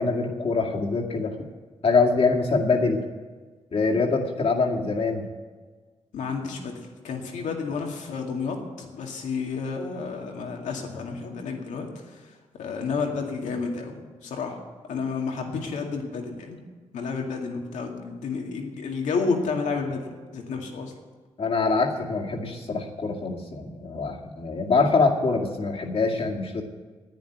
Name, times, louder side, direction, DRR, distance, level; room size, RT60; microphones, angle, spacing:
voice 1, 0.0-1.4 1.8-3.0 3.7-5.2 21.4-26.6, left 4 dB, 55° left, 0 dB, 2.2 m, -24 dB
voice 2, 6.1-6.7 7.0-12.2 12.6-14.6 14.9-16.6 16.9-20.9, left 4 dB, 85° left, 2 dB, 2.2 m, -31 dB
10.5 x 9.4 x 9.2 m, 1.4 s
cardioid pair, 75°, 12 cm